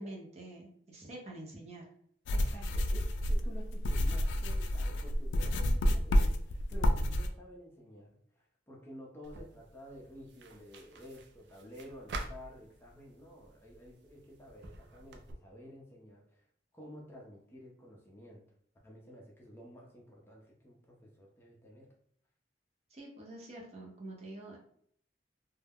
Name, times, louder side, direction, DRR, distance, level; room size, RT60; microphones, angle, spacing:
voice 1, 0.0-1.8 22.9-24.6, right 1 dB, 35° right, -2 dB, 0.7 m, -46 dB
sound 1, 2.3-7.3, equal, 85° left, 0.3 m, -29 dB
voice 2, 2.3-16.5 16.7-18.4 18.8-21.9, equal, 15° left, -3 dB, 0.5 m, -52 dB
sound 2, 9.2-15.3, right 2 dB, 65° right, 0.4 m, -48 dB
2.2 x 2.0 x 3.4 m, 0.64 s
head